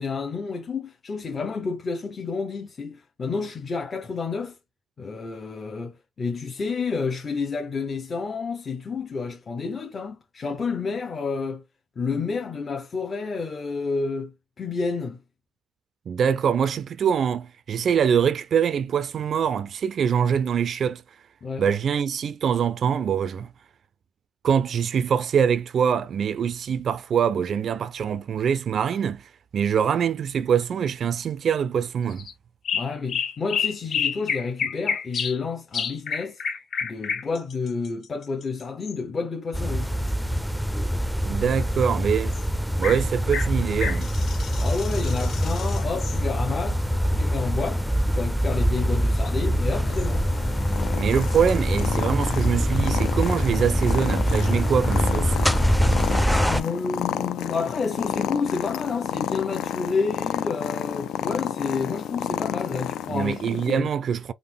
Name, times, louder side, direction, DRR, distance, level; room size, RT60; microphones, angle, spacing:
voice 1, 0.0-4.6 5.0-11.6 12.0-15.2 21.4-21.7 32.7-36.4 36.8-39.9 44.5-47.8 48.1-50.3 56.3-63.9, left 4 dB, 40° left, 0.7 m, -30 dB
voice 2, 16.1-21.0 21.6-23.5 24.4-32.3 41.2-42.3 42.8-44.1 51.0-55.5 63.1-64.3, right 7 dB, 55° right, 0.3 m, -24 dB
sound 1, 32.1-32.3 32.6-35.4 35.7-39.0 42.3-42.4 42.8-43.0 43.3-46.2 49.2-49.3 50.0-50.1, left 6 dB, 60° left, 1.0 m, -30 dB
sound 2, 39.5-56.6, equal, ahead, 0.4 m, -24 dB
Purr, 49.9-63.8, left 9 dB, 80° left, 0.3 m, -31 dB
3.6 x 2.0 x 3.4 m
cardioid pair, 90°, 0 cm